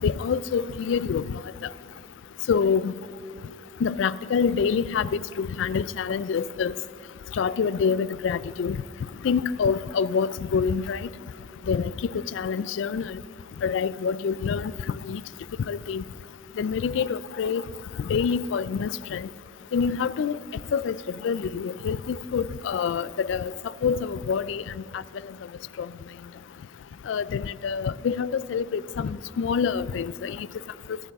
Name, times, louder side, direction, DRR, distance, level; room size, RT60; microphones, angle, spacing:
voice 1, 0.0-1.4 2.5-2.9 3.8-6.7 7.3-8.8 9.2-11.1 11.7-13.2 13.6-15.2 15.7-16.0 16.6-17.6 18.0-19.3 19.7-20.4 20.7-21.0 21.2-23.5 23.8-24.6 25.8-25.9 27.1-30.5, left 6 dB, 75° left, 0.3 m, -26 dB
21.5 x 8.7 x 3.5 m
head